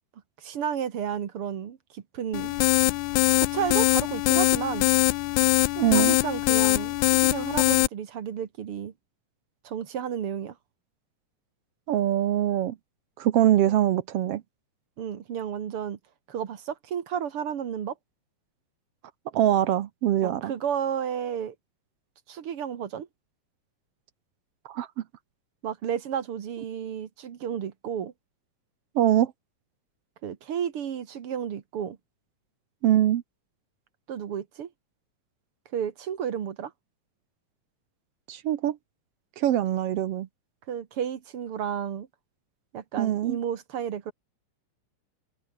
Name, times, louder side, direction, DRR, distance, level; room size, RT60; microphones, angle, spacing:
voice 1, 0.4-2.6 3.4-4.9 5.9-8.9 9.6-10.6 15.0-16.0 16.3-18.0 20.2-21.5 22.3-23.1 25.6-28.1 30.2-32.0 34.1-34.7 35.7-36.7 40.7-42.1 42.7-44.1, right 8 dB, 50° right, 2.0 m, -32 dB
sound 1, 2.3-7.9, left 20 dB, 80° left, 1.9 m, -22 dB
voice 2, 5.8-6.2 11.9-12.8 13.2-14.4 19.3-20.5 24.7-25.0 28.9-29.3 32.8-33.2 38.3-38.8 39.4-40.3 43.0-43.4, right 12 dB, 65° right, 1.5 m, -23 dB
omnidirectional pair, 3.8 m